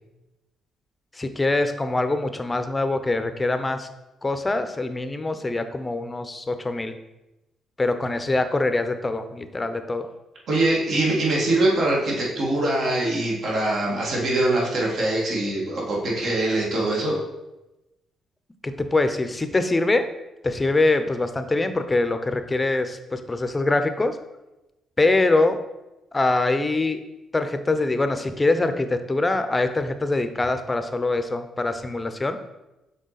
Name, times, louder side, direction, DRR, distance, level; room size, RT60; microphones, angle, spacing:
voice 1, 1.2-3.9 4.2-7.0 7.8-10.1 18.6-20.1 20.4-24.2 25.0-25.6 26.1-27.0 27.3-32.4, left 2 dB, 20° left, 9 dB, 0.6 m, -23 dB
voice 2, 10.5-17.2, right 2 dB, 60° right, -3 dB, 2.0 m, -23 dB
6.3 x 4.6 x 4.1 m, 0.98 s
cardioid pair, 90°, 0 cm